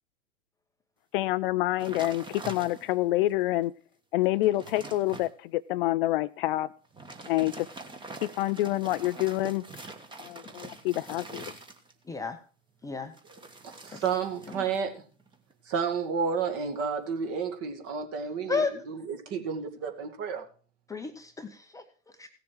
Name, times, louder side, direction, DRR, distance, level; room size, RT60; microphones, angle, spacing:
voice 1, 1.1-3.7 4.1-6.7 7.3-7.7 8.2-9.6 10.2-11.5, left 16 dB, 45° left, 14 dB, 0.5 m, -27 dB
sound 1, 1.8-3.1 3.6-3.7 4.2-5.3 6.8-12.1 13.1-14.8 15.1-15.5, right 2 dB, 10° right, 1.4 m, -44 dB
voice 2, 13.8-15.0 15.7-20.4, right 6 dB, 35° right, 5 dB, 2.3 m, -31 dB
voice 3, 20.9-21.8 22.2-22.3, left 4 dB, 10° left, 5 dB, 0.8 m, -32 dB
16.5 x 7.0 x 4.7 m, 0.40 s
hypercardioid pair, 110°, 38 cm